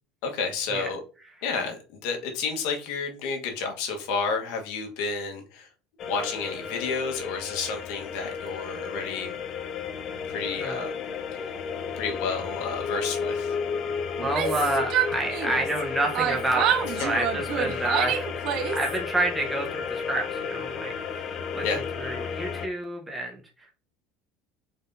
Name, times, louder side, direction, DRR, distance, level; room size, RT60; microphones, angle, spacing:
voice 1, 0.2-1.0 1.4-5.7 6.1-9.3 10.3-10.9 11.3-11.5 11.9-13.5 17.0-17.1 21.6-21.8, left 4 dB, 70° left, 3 dB, 1.1 m, -31 dB
sound 1, 6.0-22.7, left 6 dB, 45° left, 0.6 m, -33 dB
voice 2, 14.2-18.3 18.7-23.4, right 1 dB, 10° right, 0 dB, 0.7 m, -29 dB
Yell, 14.2-15.8 16.1-19.0, right 9 dB, 55° right, 0.5 m, -27 dB
4.1 x 3.6 x 2.6 m, 0.36 s
supercardioid pair, 120°, 0 cm